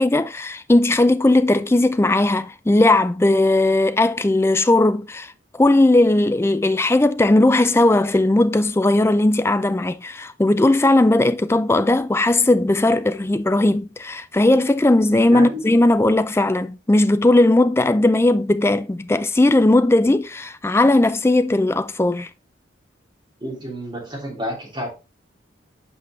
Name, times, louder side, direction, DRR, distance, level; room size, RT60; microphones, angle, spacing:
voice 1, 0.0-22.3, left 2 dB, 15° left, 0.3 m, -17 dB
voice 2, 15.3-15.6 23.4-24.9, equal, 25° right, 3.1 m, -30 dB
8.2 x 5.0 x 3.1 m
head